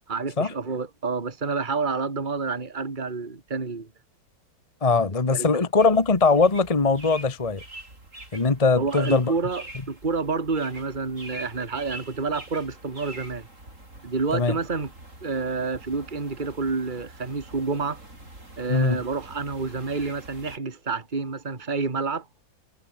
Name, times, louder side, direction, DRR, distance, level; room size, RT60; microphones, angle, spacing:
voice 1, 0.1-3.9 5.3-5.5 8.8-13.5 14.0-14.9 15.2-18.0 18.6-22.3, right 4 dB, 25° right, 2.3 m, -29 dB
voice 2, 4.8-7.6 8.3-9.3 14.3-14.6 18.7-19.0, left 4 dB, 20° left, 1.3 m, -21 dB
sound 1, 5.8-20.6, right 1 dB, 40° right, 7.8 m, -45 dB
omnidirectional pair, 1.9 m